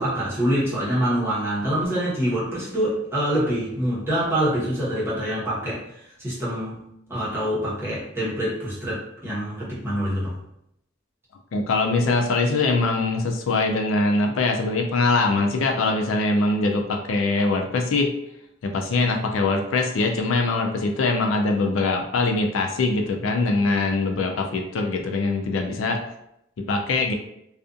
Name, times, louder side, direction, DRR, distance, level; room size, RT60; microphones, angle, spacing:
voice 1, 0.0-6.8 7.1-10.4, equal, 15° right, -9 dB, 1.0 m, -25 dB
voice 2, 11.5-18.1 18.6-26.0 26.7-27.1, left 3 dB, 80° left, 3 dB, 0.4 m, -22 dB
2.5 x 2.4 x 2.4 m, 0.81 s
head